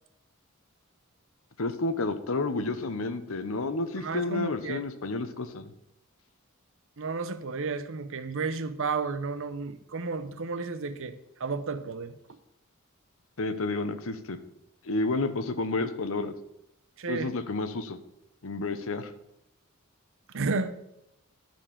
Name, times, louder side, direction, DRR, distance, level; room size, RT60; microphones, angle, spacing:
voice 1, 1.6-5.7 13.4-14.4 14.9-16.3 17.1-18.0 18.4-19.1, left 3 dB, 70° left, 10 dB, 0.9 m, -30 dB
voice 2, 4.0-4.9 7.0-12.1 17.0-17.3 20.3-20.8, right 4 dB, 65° right, 12 dB, 0.8 m, -32 dB
11.0 x 4.5 x 7.3 m, 0.82 s
head